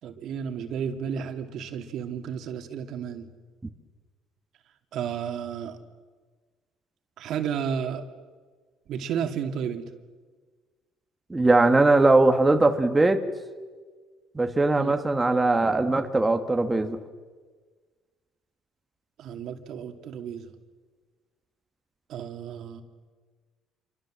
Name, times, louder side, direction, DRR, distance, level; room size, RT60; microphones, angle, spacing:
voice 1, 0.0-3.3 4.9-5.8 7.2-8.0 8.9-9.9 14.7-15.0 19.2-20.5 22.1-22.8, right 7 dB, 65° right, 6 dB, 2.7 m, -32 dB
voice 2, 11.3-13.2 14.3-17.0, right 2 dB, 15° right, 6 dB, 1.7 m, -20 dB
28.0 x 24.5 x 7.7 m, 1.5 s
cardioid pair, 110°, 0 cm